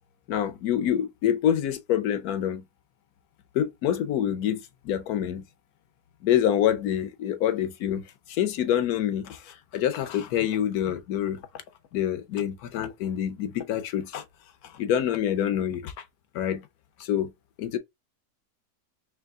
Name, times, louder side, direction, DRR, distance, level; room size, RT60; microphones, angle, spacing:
voice 1, 0.3-2.6 3.5-5.4 6.2-11.4 11.9-14.2 14.7-15.9 16.3-16.6 17.0-17.3 17.6-17.8, left 10 dB, 70° left, 1.1 m, -26 dB
3.4 x 3.2 x 3.5 m
omnidirectional pair, 1.7 m